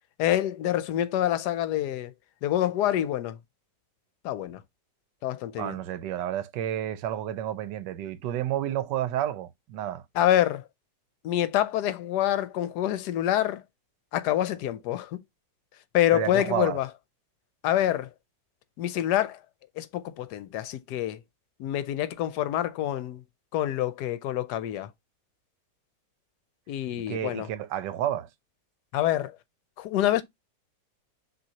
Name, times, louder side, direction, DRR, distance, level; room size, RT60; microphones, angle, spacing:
voice 1, 0.2-2.1 2.4-3.4 4.2-4.6 5.2-5.8 10.1-10.6 11.2-13.6 14.1-15.1 15.9-16.9 17.6-18.1 18.8-19.4 19.8-21.2 21.6-23.2 23.5-24.9 26.7-27.5 28.9-29.4 29.8-30.2, left 12 dB, 75° left, 1.1 m, -26 dB
voice 2, 5.6-10.0 16.1-16.8 27.0-28.3, right 11 dB, 80° right, 1.2 m, -30 dB
6.0 x 3.0 x 2.7 m
omnidirectional pair, 1.9 m